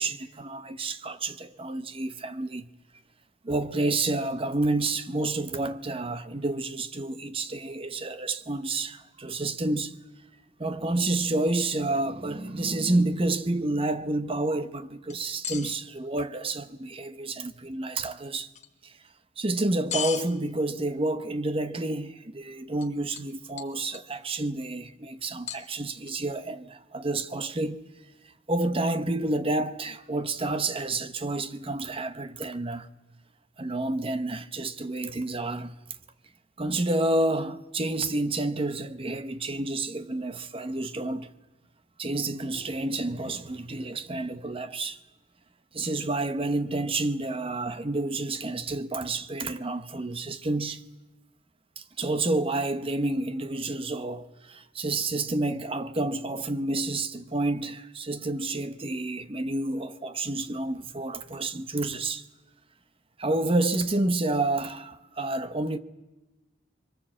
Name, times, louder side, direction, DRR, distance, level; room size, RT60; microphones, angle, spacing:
voice 1, 0.0-2.7 3.4-10.0 10.6-18.5 18.8-18.9 19.4-27.8 28.5-32.9 33.6-35.7 36.6-41.3 42.0-45.0 45.7-50.8 51.8-62.2 63.2-65.8, right 2 dB, 30° right, 0.9 m, -29 dB
sound 1, 15.1-15.8 18.5-18.7 19.9-20.2 22.8-22.9 23.2-23.3 23.6-24.2 25.5-26.1, left 8 dB, 40° left, 1.3 m, -35 dB
23.5 x 23.0 x 7.6 m
head